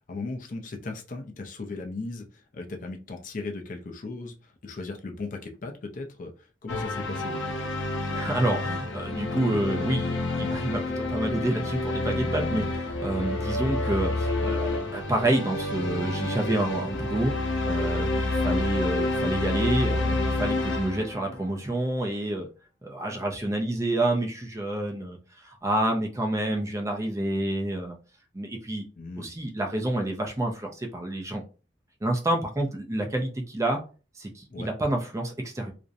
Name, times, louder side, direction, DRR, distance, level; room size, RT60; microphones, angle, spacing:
voice 1, 0.1-7.6 29.0-29.3 34.5-34.7, left 3 dB, 45° left, 3 dB, 0.4 m, -37 dB
sound 1, 6.7-21.4, left 2 dB, 90° left, 0.6 m, -28 dB
voice 2, 8.1-17.3 17.7-22.5 22.8-28.0 28.3-28.8 29.2-31.4 32.0-33.8 34.2-35.7, right 1 dB, 15° right, 2 dB, 0.4 m, -28 dB
2.4 x 2.0 x 2.6 m, 0.35 s
head